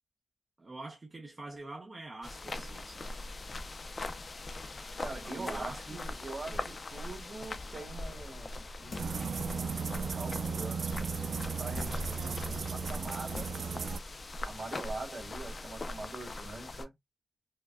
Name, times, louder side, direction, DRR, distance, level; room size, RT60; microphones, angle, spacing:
voice 1, 0.6-3.1 5.2-6.1 6.5-6.7, right 2 dB, 30° right, 0.6 m, -45 dB
sound 1, 2.2-16.9, left 2 dB, 45° left, 0.4 m, -41 dB
voice 2, 5.0-9.4 10.1-13.5 14.4-16.9, right 3 dB, 70° right, 1.7 m, -43 dB
sound 2, 8.9-9.3 9.8-9.9 11.7-12.2 12.9-13.0 13.3-13.8 14.1-14.2, left 2 dB, 75° left, 1.9 m, -45 dB
sound 3, 9.0-14.0, right 5 dB, 85° right, 0.4 m, -35 dB
4.7 x 2.1 x 2.2 m
wide cardioid pair, 140°, 0 cm